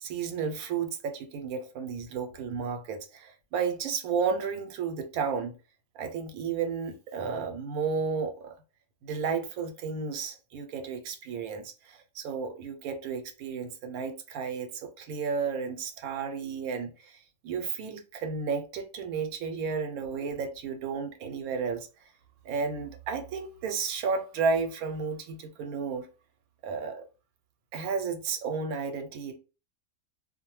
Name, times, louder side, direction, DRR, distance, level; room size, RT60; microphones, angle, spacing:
voice 1, 0.0-5.6 5.9-8.5 9.0-21.9 22.4-26.1 26.6-27.1 27.7-29.4, right 5 dB, 85° right, 1.0 m, -32 dB
2.4 x 2.1 x 3.0 m
omnidirectional pair, 1.5 m